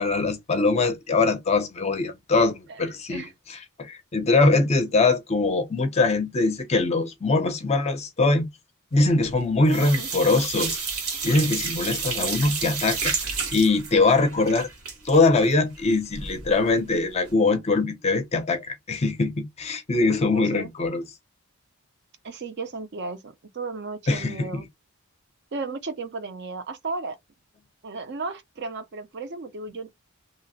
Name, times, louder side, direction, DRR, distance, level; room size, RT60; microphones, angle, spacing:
voice 1, 0.0-8.5 8.9-10.8 11.2-13.1 13.5-14.7 15.0-21.0 24.1-24.6, left 3 dB, 30° left, 0.5 m, -22 dB
voice 2, 4.5-5.1 9.6-10.1 20.3-20.7 22.2-24.7 25.5-27.2 27.8-29.9, right 3 dB, 50° right, 0.5 m, -35 dB
sound 1, 9.0-9.4 9.7-16.5 16.9-17.0 17.3-17.4, right 5 dB, 75° right, 1.0 m, -31 dB
2.9 x 2.0 x 2.7 m
head